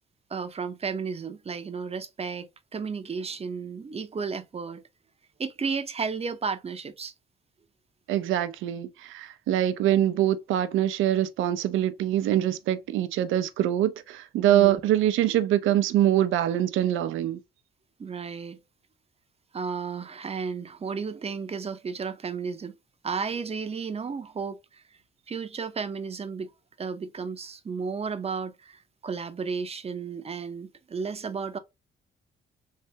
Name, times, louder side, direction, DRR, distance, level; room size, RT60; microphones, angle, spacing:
voice 1, 0.3-4.8 5.4-7.1 14.4-14.8 18.0-18.6 19.5-22.7 23.0-24.8 25.3-26.5 26.8-31.6, right 5 dB, 30° right, 0.6 m, -33 dB
voice 2, 8.1-17.4, right 12 dB, 90° right, 0.6 m, -24 dB
3.3 x 3.3 x 2.7 m
cardioid pair, 90°, 20 cm